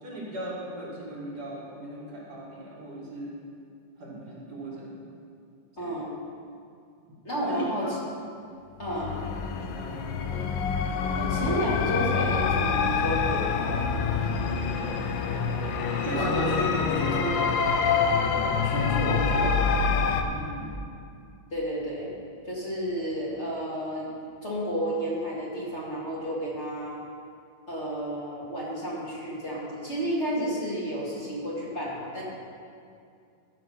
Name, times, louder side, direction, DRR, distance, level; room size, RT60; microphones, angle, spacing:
voice 1, 0.0-3.4 4.0-5.0 5.8-6.0 7.5-8.0 8.9-9.1 9.5-10.5 13.9-14.1 16.0-17.2 20.2-20.7, right 1 dB, 60° right, -5 dB, 2.5 m, -37 dB
voice 2, 5.8-6.2 7.2-7.9 8.8-9.2 11.2-14.0 16.1-17.4 18.6-19.7 21.5-22.1 22.4-24.1 24.4-27.0 27.7-32.2, equal, 40° left, -6 dB, 2.6 m, -31 dB
sound 1, 8.8-20.2, left 5 dB, 90° left, 1.5 m, -26 dB
14.0 x 6.1 x 5.6 m, 2.4 s
omnidirectional pair, 2.0 m